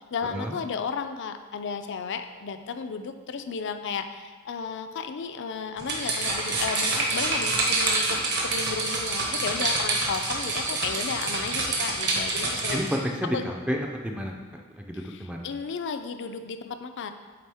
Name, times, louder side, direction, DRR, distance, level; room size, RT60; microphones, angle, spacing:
voice 1, 0.0-12.8 13.3-13.4 14.9-17.1, left 5 dB, 55° left, 8 dB, 0.4 m, -34 dB
sound 1, 5.8-13.0, right 2 dB, 50° right, 1.1 m, -27 dB
voice 2, 12.7-14.3 14.8-15.5, equal, 5° right, 1 dB, 0.4 m, -30 dB
8.6 x 3.6 x 3.5 m, 1.5 s
head